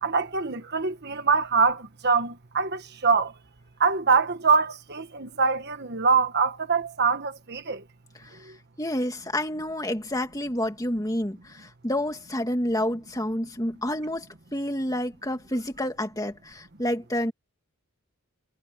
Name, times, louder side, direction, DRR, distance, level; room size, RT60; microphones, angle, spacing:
voice 1, 0.0-3.3 3.8-7.8, right 5 dB, 50° right, 1.4 m, -24 dB
voice 2, 8.8-17.3, left 1 dB, 15° left, 2.3 m, -29 dB
head